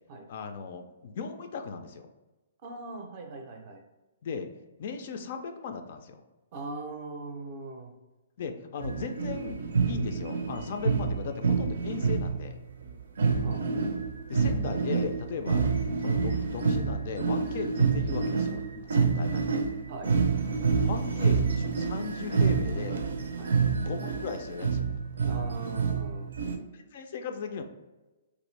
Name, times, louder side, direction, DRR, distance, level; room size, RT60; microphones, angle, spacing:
voice 1, 0.3-2.1 4.2-4.5 4.8-6.2 8.4-12.6 14.3-15.7 16.0-19.7 20.8-23.1 23.8-24.9 26.7-27.6, left 6 dB, 45° left, 6 dB, 0.3 m, -37 dB
voice 2, 2.6-3.8 6.5-7.9 13.4-13.6 19.9-20.1 23.4-23.5 25.2-26.4, right 3 dB, 35° right, 4 dB, 0.5 m, -40 dB
sound 1, 8.8-12.5 12.8-12.9 13.2-26.6, right 5 dB, 90° right, 0.5 m, -27 dB
3.1 x 2.5 x 3.1 m, 1.1 s
hypercardioid pair, 170°, 0 cm